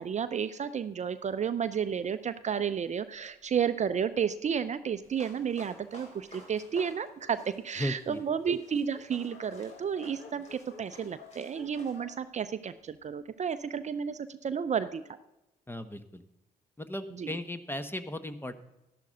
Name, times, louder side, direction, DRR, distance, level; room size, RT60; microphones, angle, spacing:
voice 1, 0.0-15.0 17.2-17.3, right 7 dB, 40° right, 12 dB, 0.6 m, -32 dB
Dog, 2.5-5.5 6.2-6.3 6.6-6.7 6.9-13.3, left 5 dB, 60° left, 1.4 m, -55 dB
sound 1, 5.0-12.0, left 1 dB, 35° left, 3.9 m, -53 dB
voice 2, 7.8-8.2 15.7-16.2 16.8-18.5, left 1 dB, 10° left, 11 dB, 1.1 m, -36 dB
12.0 x 11.5 x 3.9 m, 0.91 s
hypercardioid pair, 50°, 19 cm